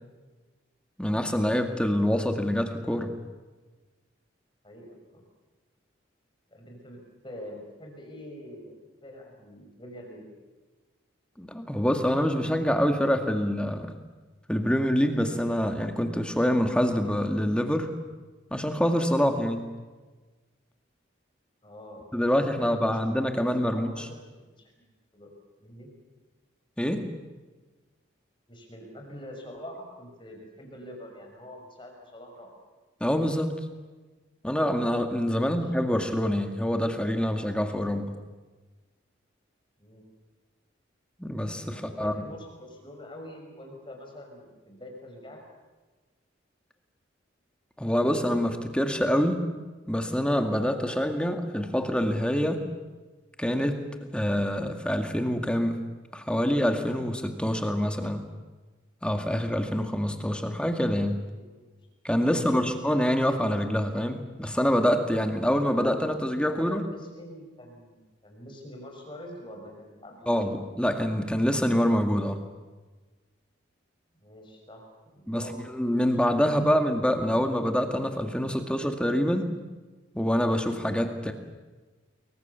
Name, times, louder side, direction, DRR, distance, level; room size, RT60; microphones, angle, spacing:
voice 1, 1.0-3.1 11.4-13.9 14.5-17.9 18.5-19.7 22.1-24.1 26.8-27.1 33.0-33.5 34.4-38.1 41.2-42.1 47.8-49.4 49.9-52.6 53.4-53.8 54.1-55.8 56.1-58.2 59.0-61.2 62.0-66.8 70.3-72.4 75.3-79.5 80.1-81.3, equal, 5° left, 5 dB, 2.1 m, -26 dB
voice 2, 4.6-5.2 6.5-8.7 9.0-10.3 21.6-22.0 22.7-24.8 25.1-25.3 25.6-25.9 28.5-32.5 35.4-35.7 39.8-40.0 41.7-45.4 61.3-61.8 62.2-62.7 66.5-70.4 74.2-74.8 75.1-75.7, equal, 25° left, 2 dB, 6.0 m, -45 dB
28.5 x 23.0 x 7.1 m, 1.3 s
head